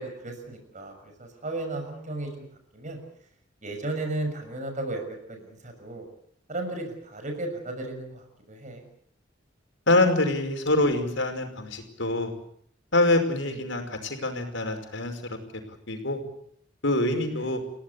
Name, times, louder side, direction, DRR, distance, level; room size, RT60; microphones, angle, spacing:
voice 1, 0.0-2.3 2.7-3.0 3.6-6.1 6.5-8.8 13.4-13.6 17.3-17.5, right 2 dB, 40° right, 5 dB, 6.5 m, -35 dB
voice 2, 9.9-12.3 12.9-15.4 15.9-16.2 16.8-17.6, left 2 dB, 85° left, 5 dB, 5.3 m, -25 dB
29.5 x 17.0 x 8.4 m, 0.68 s
head